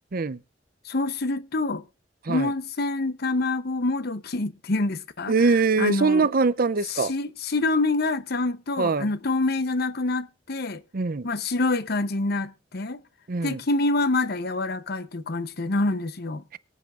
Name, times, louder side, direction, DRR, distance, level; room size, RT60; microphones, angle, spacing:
voice 1, 0.8-1.8 2.3-6.3 6.9-10.8 11.2-13.0 13.4-16.4, left 2 dB, 60° left, 0.9 m, -26 dB
voice 2, 5.3-7.1 8.8-9.1 10.9-11.2 13.3-13.6, right 4 dB, 50° right, 0.6 m, -22 dB
23.0 x 8.3 x 2.5 m
head